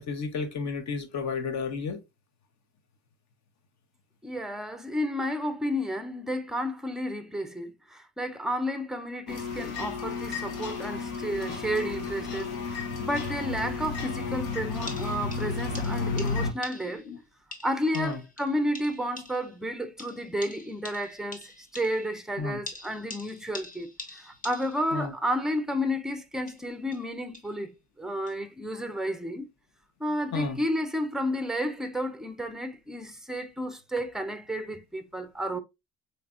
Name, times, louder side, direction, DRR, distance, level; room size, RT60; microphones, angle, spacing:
voice 1, 0.0-2.0 17.1-17.2 17.9-18.2 22.4-22.6 24.9-25.1 30.3-30.6, left 4 dB, 50° left, 1.0 m, -32 dB
voice 2, 4.2-17.0 17.6-29.5 30.0-35.6, equal, ahead, 0.5 m, -32 dB
sound 1, 9.3-16.5, left 4 dB, 80° left, 1.0 m, -32 dB
sound 2, 14.9-17.1 17.5-19.6 20.0-22.2 22.7-25.0 26.3-27.6 28.3-28.4, left 2 dB, 20° left, 1.0 m, -45 dB
4.0 x 3.2 x 2.4 m
supercardioid pair, 75°, 37 cm